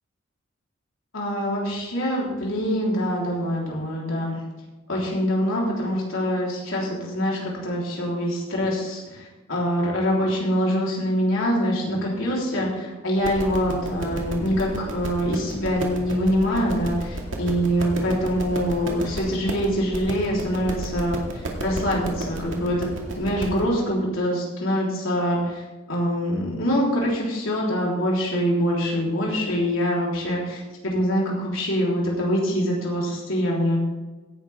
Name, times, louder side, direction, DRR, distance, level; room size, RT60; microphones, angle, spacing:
voice 1, 1.1-4.4 4.9-33.8, equal, 85° left, -4 dB, 3.9 m, -24 dB
sound 1, 13.2-23.7, right 1 dB, 70° right, 2.3 m, -32 dB
16.5 x 10.5 x 3.6 m, 1.2 s
head